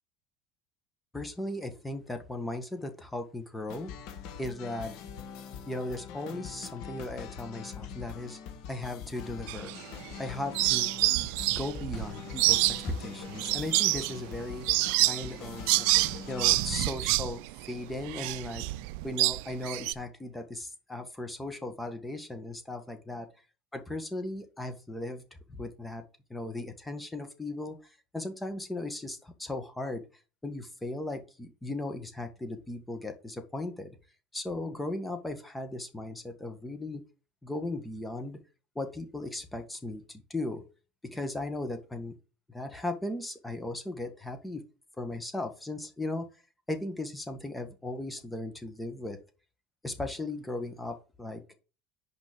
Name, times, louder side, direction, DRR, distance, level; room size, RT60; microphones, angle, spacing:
voice 1, 1.1-3.9 4.4-5.0 5.7-8.4 8.7-9.7 10.2-10.9 11.5-14.7 15.1-15.9 16.3-18.6 19.0-23.3 23.7-25.2 25.5-26.0 26.3-27.8 28.1-30.0 30.4-34.0 34.3-37.0 37.4-38.4 38.7-40.6 41.0-42.1 42.5-44.6 45.0-46.3 46.7-49.2 49.8-51.4, left 2 dB, 10° left, 7 dB, 1.7 m, -37 dB
sound 1, 3.7-16.8, left 7 dB, 65° left, 1.7 m, -43 dB
sound 2, 9.5-10.2 10.5-19.9, right 19 dB, 75° right, 0.4 m, -27 dB
6.2 x 5.3 x 6.7 m, 0.34 s
supercardioid pair, 95°, 0 cm